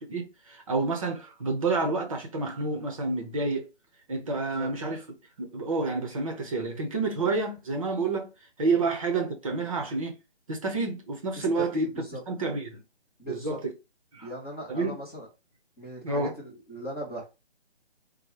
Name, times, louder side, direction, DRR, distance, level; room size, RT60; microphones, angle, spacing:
voice 1, 0.1-3.7 4.1-5.0 5.4-8.3 8.6-10.2 10.5-11.9 12.3-12.8 13.3-13.7 14.1-14.3 14.7-14.9 16.0-16.3, right 3 dB, 30° right, 0.9 m, -29 dB
voice 2, 11.3-12.2 13.2-13.6 14.2-15.3 15.8-17.2, equal, 5° left, 0.8 m, -38 dB
4.3 x 2.3 x 4.7 m
hypercardioid pair, 160°, 33 cm